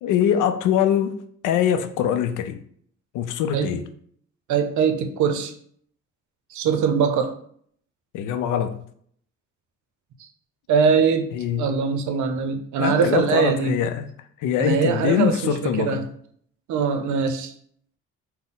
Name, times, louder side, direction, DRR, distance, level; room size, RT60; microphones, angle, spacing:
voice 1, 0.0-2.6 3.1-3.8 8.1-8.8 11.3-11.7 12.8-14.1 14.4-16.1, left 9 dB, 85° left, 0.5 m, -23 dB
voice 2, 4.5-5.5 6.5-7.3 10.7-13.8 14.6-16.0 16.7-17.5, right 6 dB, 70° right, 0.6 m, -22 dB
4.1 x 2.1 x 3.8 m
cardioid pair, 90°, 30 cm